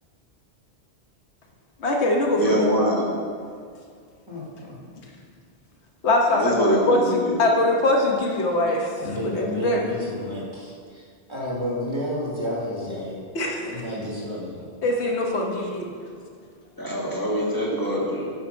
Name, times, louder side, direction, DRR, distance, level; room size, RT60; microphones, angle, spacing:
voice 1, 1.8-2.7 6.0-8.9 9.3-9.8 13.3-13.7 14.8-15.9, left 1 dB, 90° left, 0 dB, 1.3 m, -22 dB
voice 2, 2.3-3.1 6.3-7.4 16.8-18.3, equal, 20° left, -5 dB, 1.6 m, -24 dB
voice 3, 4.3-4.8 8.7-13.2 13.6-14.7, equal, 25° right, -5 dB, 1.7 m, -31 dB
7.6 x 5.1 x 5.1 m, 2.1 s
omnidirectional pair, 1.1 m